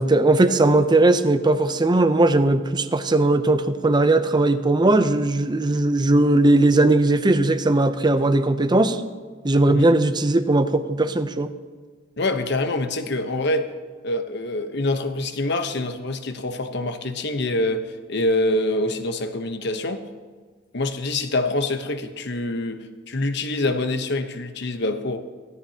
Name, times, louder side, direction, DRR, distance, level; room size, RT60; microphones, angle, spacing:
voice 1, 0.0-9.0 9.4-11.5, right 2 dB, 25° right, 10 dB, 0.6 m, -18 dB
voice 2, 12.2-13.7 14.0-20.0 20.7-25.2, left 2 dB, 65° left, 8 dB, 1.0 m, -25 dB
17.0 x 13.5 x 2.9 m, 1.5 s
head